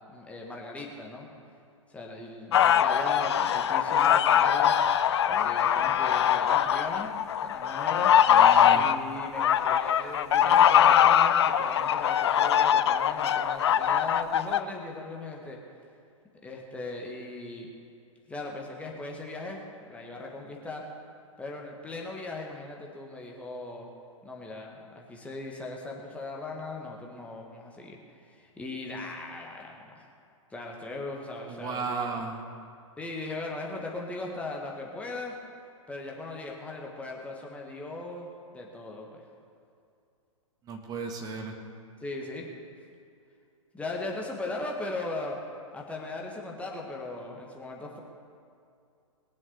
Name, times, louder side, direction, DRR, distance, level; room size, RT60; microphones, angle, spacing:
voice 1, 0.1-1.3 1.9-4.8 5.3-7.1 7.4-8.1 8.7-15.6 16.4-17.7 18.3-20.9 21.4-23.9 24.2-30.1 30.5-32.1 33.0-35.3 35.9-39.2 42.0-42.5 43.7-45.4 45.7-48.0, left 2 dB, 5° left, -1 dB, 1.6 m, -38 dB
sound 1, 2.5-14.6, left 9 dB, 55° left, 0.6 m, -22 dB
voice 2, 8.3-8.9 31.6-32.4 40.6-41.5, right 5 dB, 20° right, 2 dB, 1.6 m, -34 dB
21.0 x 7.4 x 6.8 m, 2.5 s
figure-of-eight pair, 110°, 17 cm